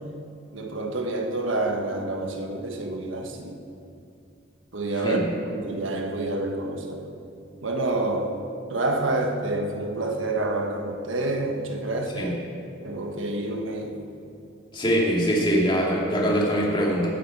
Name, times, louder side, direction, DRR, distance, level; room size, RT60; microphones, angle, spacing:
voice 1, 0.5-3.6 4.7-7.1 7.6-8.4 8.7-12.4 12.8-14.1, right 2 dB, 85° right, 3 dB, 1.4 m, -28 dB
voice 2, 14.7-17.1, equal, 25° left, -4 dB, 2.5 m, -23 dB
18.5 x 9.4 x 4.7 m, 2.6 s
head